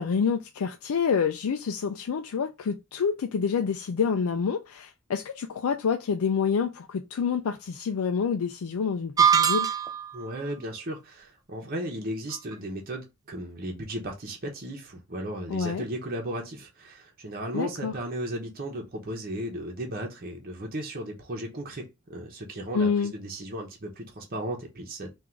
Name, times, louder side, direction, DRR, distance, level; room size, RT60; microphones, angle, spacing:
voice 1, 0.0-9.7 15.5-15.9 17.5-17.9 22.7-23.1, left 6 dB, 90° left, 0.4 m, -27 dB
sound 1, 9.2-10.2, right 8 dB, 15° right, 0.4 m, -21 dB
voice 2, 10.1-25.1, right 1 dB, 45° right, 0.9 m, -35 dB
3.8 x 2.6 x 4.4 m
head